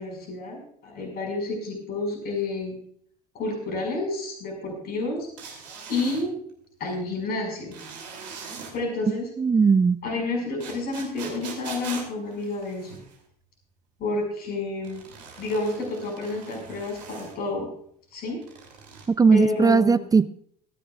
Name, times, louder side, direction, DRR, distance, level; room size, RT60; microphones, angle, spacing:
voice 1, 0.0-2.8 3.3-5.6 5.9-6.3 6.8-7.8 8.7-9.3 10.0-13.0 14.0-15.0 15.4-17.7 18.1-18.4 19.3-20.1, left 2 dB, 50° left, 2 dB, 5.7 m, -30 dB
sound 1, 5.4-6.2 7.7-8.7 10.6-13.2 14.8-17.4 18.4-19.1, right 5 dB, 80° right, 3.1 m, -41 dB
voice 2, 9.4-10.0 19.2-20.3, right 5 dB, 15° right, 14 dB, 0.5 m, -18 dB
25.0 x 10.0 x 2.4 m, 0.63 s
hypercardioid pair, 65°, 21 cm